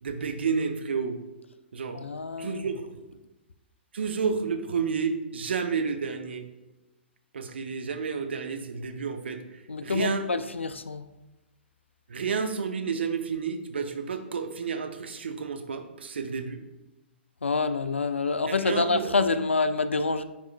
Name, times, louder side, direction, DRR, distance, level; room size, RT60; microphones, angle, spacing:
voice 1, 0.0-1.2 1.7-2.0 2.4-3.0 3.9-6.5 7.3-10.3 12.1-16.6 18.5-19.1, right 5 dB, 65° right, 6 dB, 0.7 m, -31 dB
voice 2, 1.9-2.6 9.7-11.0 17.4-20.2, left 4 dB, 80° left, 11 dB, 0.4 m, -27 dB
10.5 x 4.7 x 2.2 m, 1.0 s
figure-of-eight pair, 115°, 6 cm